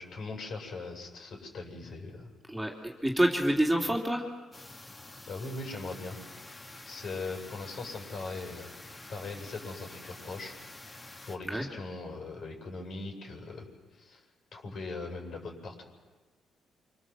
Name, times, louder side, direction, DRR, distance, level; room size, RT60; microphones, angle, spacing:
voice 1, 0.0-2.3 5.3-6.2 6.8-10.5 11.2-13.7 13.9-14.2 14.5-15.8, left 3 dB, 60° left, 2 dB, 7.3 m, -40 dB
voice 2, 2.5-4.3 11.4-11.7, right 1 dB, 5° right, 0 dB, 3.1 m, -27 dB
sound 1, 4.5-11.4, left 2 dB, 25° left, 2.8 m, -48 dB
29.5 x 26.0 x 7.7 m, 1.3 s
cardioid pair, 90°, 0 cm